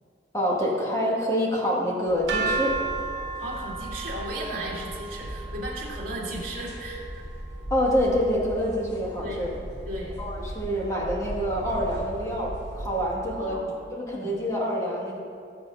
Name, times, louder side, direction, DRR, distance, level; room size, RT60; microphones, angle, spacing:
voice 1, 0.3-2.8 7.7-9.5 10.2-13.6 13.9-15.2, equal, 20° left, -4 dB, 2.2 m, -26 dB
sound 1, 2.1-13.1, equal, 85° left, 2.7 m, -38 dB
sound 2, 2.3-8.2, right 4 dB, 80° right, 1.5 m, -34 dB
voice 2, 3.4-7.2 9.2-9.4 9.9-10.2 13.4-13.7 14.2-14.4, right 1 dB, 50° right, -5 dB, 2.8 m, -35 dB
18.5 x 8.2 x 2.8 m, 2.4 s
head